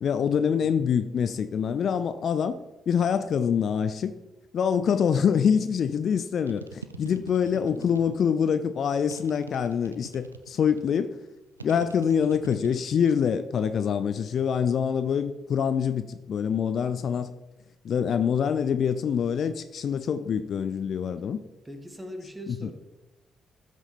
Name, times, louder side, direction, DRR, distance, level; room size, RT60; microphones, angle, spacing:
voice 1, 0.0-2.6 2.9-4.1 4.5-11.2 11.6-17.3 17.8-21.4 22.6-22.7, left 7 dB, 55° left, 0.5 m, -25 dB
voice 2, 0.6-1.0 7.5-8.0 21.7-22.7, equal, 10° right, 1.8 m, -41 dB
sound 1, 6.5-8.3 9.1-10.9 11.6-13.3 13.6-14.2, right 5 dB, 90° right, 0.4 m, -44 dB
13.0 x 6.1 x 4.3 m
figure-of-eight pair, 40°, 0 cm